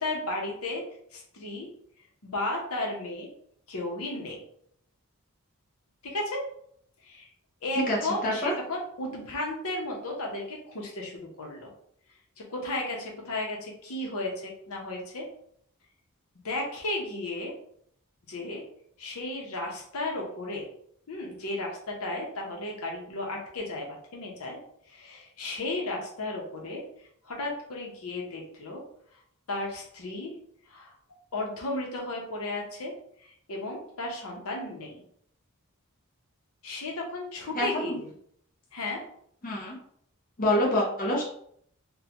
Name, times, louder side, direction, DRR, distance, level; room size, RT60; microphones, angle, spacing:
voice 1, 0.0-0.8 1.1-1.7 2.2-3.3 3.7-4.4 6.0-6.4 7.0-7.3 7.6-11.7 12.4-15.3 16.4-17.5 18.3-18.6 19.0-20.7 21.1-24.6 24.9-26.8 27.2-28.8 29.5-30.3 30.7-30.9 31.3-32.9 33.2-35.0 36.6-38.1 38.7-39.0, left 2 dB, 75° left, -1 dB, 0.8 m, -34 dB
voice 2, 8.2-8.5 37.5-38.0 39.4-39.8 40.4-41.2, left 1 dB, 40° left, -3 dB, 0.7 m, -26 dB
3.7 x 2.2 x 2.8 m, 0.66 s
head